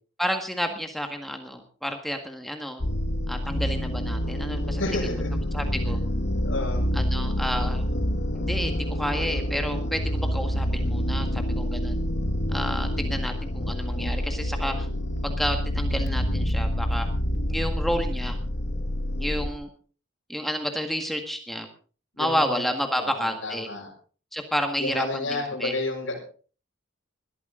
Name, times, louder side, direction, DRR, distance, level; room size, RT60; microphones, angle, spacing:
voice 1, 0.2-2.8 3.3-5.2 5.5-6.0 6.9-7.9 8.3-12.0 12.5-14.9 15.2-17.1 17.5-18.4 19.2-19.7 20.3-21.7 22.2-23.7 24.3-25.7, equal, ahead, 4 dB, 1.8 m, -30 dB
sound 1, 2.8-19.5, equal, 60° left, 1.5 m, -27 dB
voice 2, 4.8-5.3 6.4-6.8 22.2-22.6 22.9-23.9 24.8-26.2, left 2 dB, 80° left, -4 dB, 6.9 m, -31 dB
21.0 x 13.0 x 3.9 m, 0.40 s
head